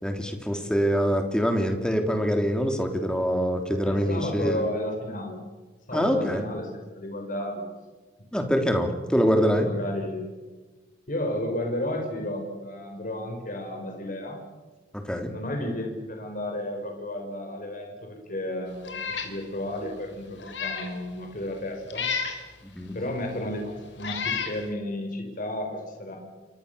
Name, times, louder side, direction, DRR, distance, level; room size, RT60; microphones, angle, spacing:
voice 1, 0.0-4.6 5.9-6.4 8.3-9.7 15.1-15.3 22.7-22.9, equal, 5° left, 5 dB, 3.3 m, -24 dB
voice 2, 3.8-5.4 5.9-7.6 9.3-10.3 11.1-14.4 15.2-22.1 22.9-26.2, left 1 dB, 50° left, 2 dB, 5.2 m, -33 dB
Meow, 18.8-19.3 19.8-19.9 20.4-20.9 21.9-22.4 23.3-23.4 24.0-24.6, left 6 dB, 85° left, 3.9 m, -31 dB
28.5 x 24.5 x 6.9 m, 1.3 s
head